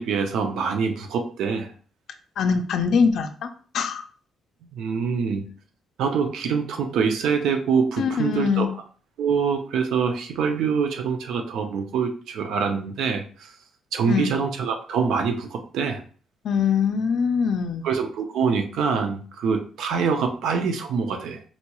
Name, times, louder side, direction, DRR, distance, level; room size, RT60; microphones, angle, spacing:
voice 1, 0.0-1.7 4.7-5.5 6.0-8.7 9.2-13.5 13.9-16.0 17.8-21.4, right 6 dB, 70° right, 5 dB, 0.5 m, -25 dB
voice 2, 2.4-3.5 3.7-4.0 8.0-8.7 14.1-14.4 16.4-17.9, left 6 dB, 55° left, 8 dB, 0.4 m, -23 dB
4.1 x 2.3 x 2.9 m, 0.42 s
cardioid pair, 170°, 0 cm